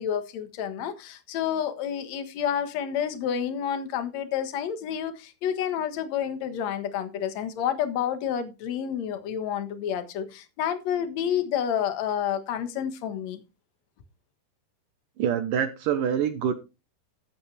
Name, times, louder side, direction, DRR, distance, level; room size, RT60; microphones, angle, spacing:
voice 1, 0.0-13.4, left 9 dB, 60° left, 2.0 m, -29 dB
voice 2, 15.2-16.5, right 8 dB, 75° right, 2.1 m, -25 dB
15.0 x 8.4 x 3.4 m
omnidirectional pair, 4.9 m